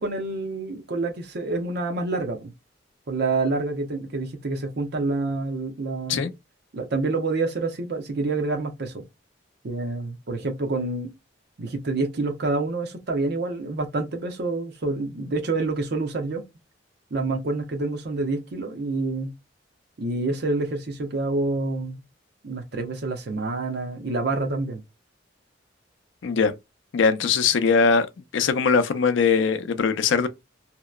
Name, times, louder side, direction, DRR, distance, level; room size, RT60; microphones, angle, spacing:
voice 1, 0.0-2.5 3.1-6.3 6.7-9.0 9.6-11.1 11.6-16.4 17.1-19.3 20.0-22.0 22.4-24.8, right 3 dB, 60° right, 0.7 m, -27 dB
voice 2, 26.2-26.5 26.9-28.1 28.3-30.3, left 5 dB, 80° left, 0.4 m, -21 dB
2.8 x 2.0 x 2.2 m
head